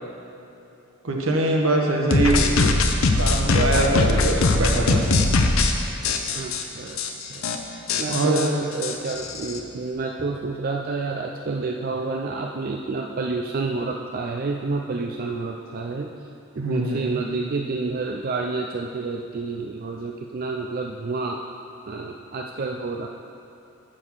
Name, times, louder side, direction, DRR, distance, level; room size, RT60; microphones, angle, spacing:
voice 1, 1.0-2.4 3.1-5.0 8.1-8.4 16.6-17.2, right 2 dB, 75° right, 0 dB, 1.3 m, -23 dB
sound 1, 2.1-5.7 6.0-6.6 7.0-7.1 7.3-7.6 7.9-9.6, left 3 dB, 80° left, 0.7 m, -21 dB
voice 2, 2.3-2.7 6.3-7.0 7.3-7.5 8.0-16.1 16.6-21.4 21.9-23.1, right 3 dB, 45° right, 1 dB, 0.4 m, -29 dB
7.5 x 6.5 x 6.2 m, 2.8 s
head